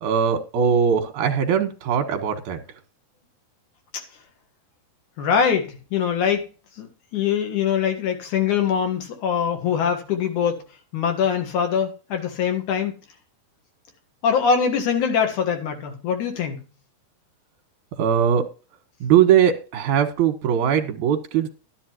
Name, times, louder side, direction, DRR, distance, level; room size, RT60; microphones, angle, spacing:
voice 1, 0.0-2.6 18.0-18.4 19.0-21.5, right 8 dB, 65° right, 5 dB, 2.5 m, -20 dB
voice 2, 5.2-6.4 6.8-6.9 7.1-10.6 10.9-12.9 14.2-16.6, left 7 dB, 60° left, 4 dB, 2.8 m, -23 dB
12.5 x 10.5 x 3.0 m, 0.34 s
omnidirectional pair, 4.2 m